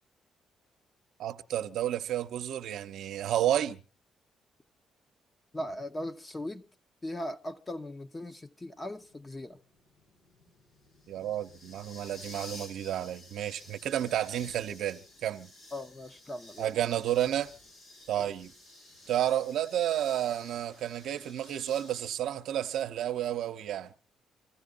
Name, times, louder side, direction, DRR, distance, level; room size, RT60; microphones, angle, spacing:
voice 1, 1.2-3.8 11.1-15.5 16.6-17.5 18.1-18.5 19.1-23.9, right 11 dB, 75° right, 0.7 m, -31 dB
voice 2, 5.5-6.6 7.0-9.6 15.7-16.7 18.2-18.3, left 1 dB, 20° left, 0.9 m, -39 dB
sound 1, 8.9-22.0, left 1 dB, 85° left, 4.0 m, -52 dB
26.0 x 14.5 x 2.5 m
cardioid pair, 90°, 0 cm